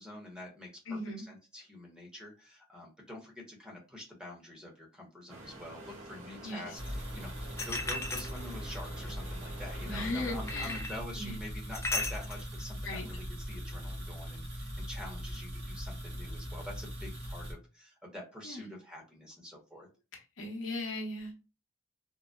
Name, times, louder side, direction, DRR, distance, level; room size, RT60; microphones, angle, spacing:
voice 1, 0.0-1.0 1.3-19.9, left 1 dB, 5° right, -1 dB, 0.9 m, -46 dB
voice 2, 0.9-1.3 6.4-6.8 9.8-10.8 11.2-11.4 12.8-13.1 18.4-18.7 20.1-21.4, left 2 dB, 65° left, 1 dB, 0.8 m, -38 dB
sound 1, 5.3-10.8, right 1 dB, 75° right, 1.5 m, -48 dB
sound 2, 6.8-17.5, equal, 60° right, 1.4 m, -40 dB
sound 3, 7.6-8.8 10.5-11.0 11.7-12.5, left 2 dB, 15° left, 0.4 m, -35 dB
3.8 x 2.1 x 2.2 m, 0.30 s
head